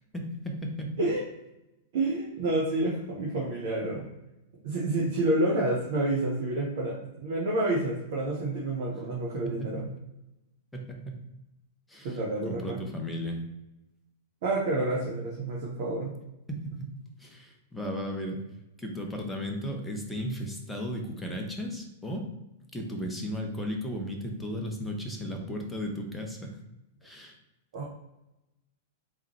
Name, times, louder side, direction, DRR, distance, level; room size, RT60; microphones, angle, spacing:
voice 1, 0.1-0.9 9.4-9.9 10.7-11.2 11.9-12.2 12.4-13.4 16.5-16.9 17.2-18.4 18.8-22.2 22.7-26.6 27.0-27.3, equal, 5° left, 1 dB, 0.8 m, -35 dB
voice 2, 1.9-4.1 4.6-9.9 12.0-12.8 14.4-16.1 27.7-27.8, right 2 dB, 50° right, -4 dB, 0.9 m, -29 dB
3.7 x 3.2 x 3.0 m, 0.92 s
figure-of-eight pair, 100°, 0 cm